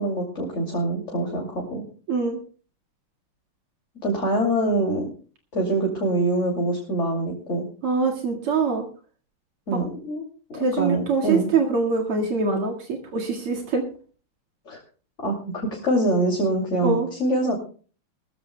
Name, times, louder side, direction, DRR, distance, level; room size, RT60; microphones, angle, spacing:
voice 1, 0.0-1.8 4.0-5.1 5.5-7.7 9.7-10.2 10.5-11.5 14.7-14.8 15.2-15.4 15.7-17.5, right 1 dB, 35° left, 0 dB, 2.9 m, -24 dB
voice 2, 2.1-2.4 7.8-8.8 10.6-13.9 16.8-17.1, right 4 dB, 85° right, -1 dB, 2.9 m, -24 dB
21.0 x 14.5 x 2.2 m, 0.40 s
omnidirectional pair, 2.4 m